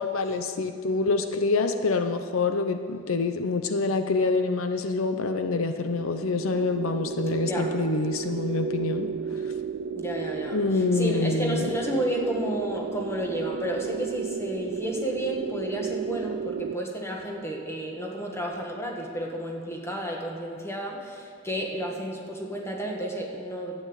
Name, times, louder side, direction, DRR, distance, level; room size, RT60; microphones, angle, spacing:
voice 1, 0.0-9.1 10.5-11.7, left 3 dB, 75° left, 8 dB, 0.7 m, -26 dB
sound 1, 5.8-16.8, right 6 dB, 55° right, 0.3 m, -33 dB
voice 2, 7.4-7.8 10.0-23.8, right 1 dB, 15° left, 0 dB, 1.8 m, -32 dB
12.0 x 8.9 x 8.1 m, 2.1 s
head